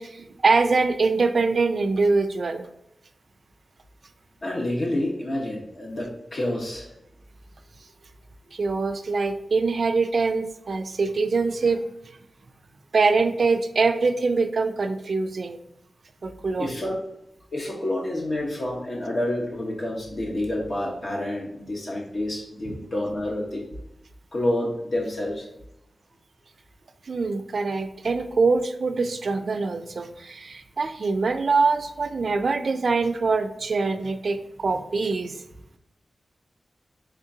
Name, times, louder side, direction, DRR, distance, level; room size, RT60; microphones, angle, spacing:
voice 1, 0.0-2.7 8.5-11.8 12.9-15.6 16.2-16.7 22.7-22.8 27.1-35.4, right 4 dB, 65° right, 8 dB, 0.3 m, -24 dB
voice 2, 4.4-6.9 16.6-16.9 17.5-23.6 24.3-25.5, left 1 dB, 60° left, -2 dB, 1.1 m, -28 dB
3.6 x 3.5 x 2.7 m, 0.84 s
cardioid pair, 65°, 0 cm